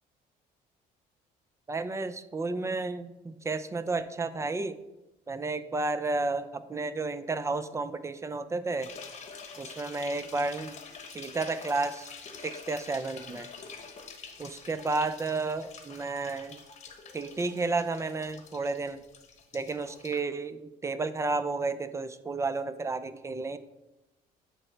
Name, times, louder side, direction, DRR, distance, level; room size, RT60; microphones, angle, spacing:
voice 1, 1.7-4.8 5.3-8.9 9.6-10.8 11.1-12.1 12.4-13.5 14.4-16.6 17.1-19.0 19.5-23.6, right 3 dB, 15° right, 13 dB, 0.4 m, -32 dB
sound 1, 8.8-20.2, left 5 dB, 40° left, 1.0 m, -47 dB
8.6 x 3.3 x 4.4 m, 0.97 s
cardioid pair, 110°, 17 cm